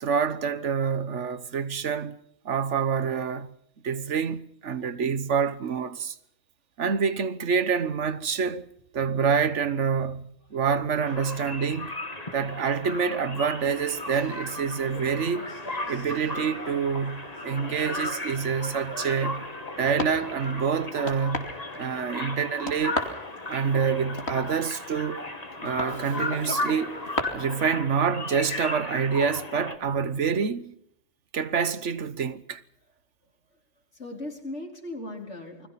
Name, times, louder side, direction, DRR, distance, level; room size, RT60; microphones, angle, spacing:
voice 1, 0.0-2.2 2.4-3.5 3.8-6.1 6.8-8.7 8.9-11.9 12.3-15.5 15.9-19.5 19.8-23.0 23.5-25.3 25.6-26.9 27.3-30.7 31.3-32.6, right 6 dB, 85° right, 1.4 m, -27 dB
sound 1, 11.0-29.7, left 2 dB, 35° left, 2.4 m, -36 dB
sound 2, 13.6-27.2, left 2 dB, 65° left, 3.2 m, -39 dB
voice 2, 33.9-35.7, left 2 dB, 80° left, 4.6 m, -38 dB
28.5 x 21.0 x 5.8 m
omnidirectional pair, 1.2 m